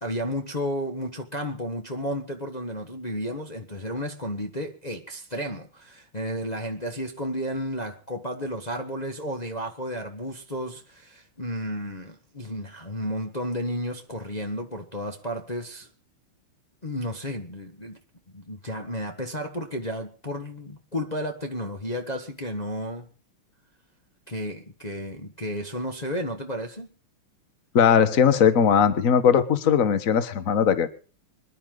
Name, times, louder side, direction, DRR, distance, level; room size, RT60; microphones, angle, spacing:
voice 1, 0.0-15.9 16.8-18.0 18.3-23.1 24.3-26.9, equal, 25° left, 1.3 m, -32 dB
voice 2, 27.7-30.9, left 7 dB, 45° left, 1.5 m, -19 dB
26.0 x 11.0 x 3.9 m
omnidirectional pair, 2.3 m